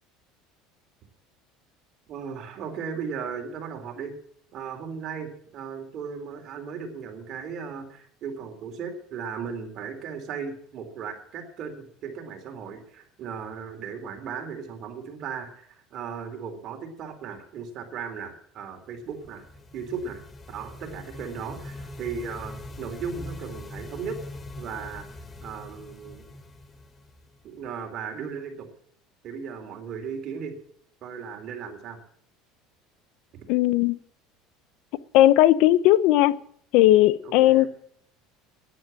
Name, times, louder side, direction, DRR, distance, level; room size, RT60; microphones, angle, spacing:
voice 1, 2.1-4.1 4.5-19.5 19.7-24.2 24.6-25.1 25.4-26.2 27.4-28.7 29.2-30.5 31.0-32.0 37.2-37.7, right 6 dB, 50° right, 3.6 m, -36 dB
sound 1, 18.9-27.7, left 1 dB, 20° left, 1.3 m, -42 dB
voice 2, 33.5-34.0 35.1-36.4 36.7-37.7, left 14 dB, 65° left, 0.7 m, -17 dB
11.0 x 10.5 x 7.7 m
supercardioid pair, 120°, 0 cm